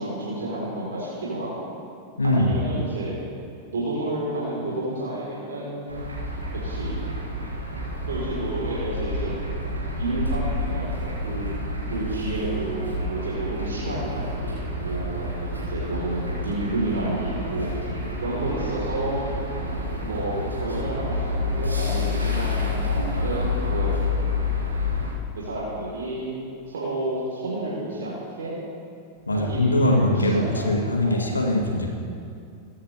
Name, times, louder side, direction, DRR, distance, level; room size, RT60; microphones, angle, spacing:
voice 1, 0.0-1.6 2.2-3.2 3.7-5.9 6.6-7.0 8.1-9.3 10.0-11.5 11.9-17.7 18.2-19.2 20.0-23.9 25.3-26.4 26.7-28.6 29.3-31.3, right 2 dB, 65° right, -6 dB, 3.4 m, -30 dB
voice 2, 2.2-2.5 29.3-31.9, left 1 dB, 75° left, 1 dB, 1.8 m, -22 dB
sound 1, 5.9-25.1, left 2 dB, 80° right, 3.7 m, -29 dB
22.5 x 9.6 x 3.3 m, 2.4 s
figure-of-eight pair, 90°, 0 cm